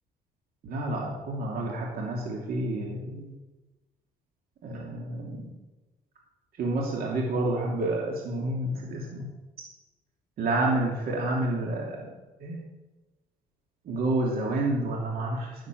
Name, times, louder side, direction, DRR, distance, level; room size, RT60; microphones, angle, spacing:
voice 1, 0.6-3.3 4.6-5.4 6.6-9.3 10.4-12.1 12.4-12.6 13.9-15.5, right 2 dB, 70° right, -2 dB, 2.7 m, -29 dB
11.0 x 7.3 x 7.8 m, 1.1 s
cardioid pair, 75°, 16 cm